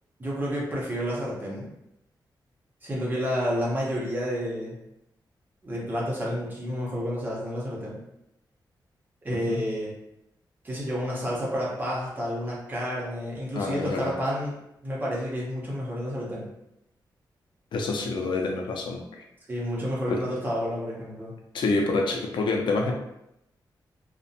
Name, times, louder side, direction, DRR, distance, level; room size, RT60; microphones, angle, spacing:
voice 1, 0.2-1.7 2.8-4.8 5.6-8.0 9.2-9.9 10.6-14.5 14.8-16.5 19.5-21.3, equal, 25° right, -5 dB, 0.7 m, -30 dB
voice 2, 9.3-9.6 13.5-14.1 17.7-19.2 20.1-20.2 21.5-22.9, left 3 dB, 90° left, 2 dB, 0.4 m, -27 dB
2.5 x 2.1 x 2.6 m, 0.83 s
wide cardioid pair, 165°, 8 cm